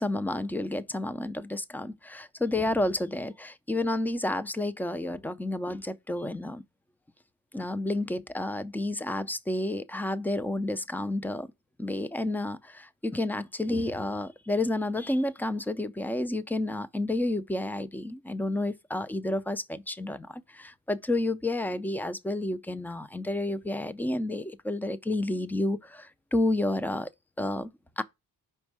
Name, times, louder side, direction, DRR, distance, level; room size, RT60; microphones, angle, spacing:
voice 1, 0.0-6.6 7.5-11.5 11.8-27.1 27.4-27.7 28.0-28.1, left 1 dB, 5° left, 0.4 m, -30 dB
5.2 x 4.4 x 4.7 m
cardioid pair, 105°, 40 cm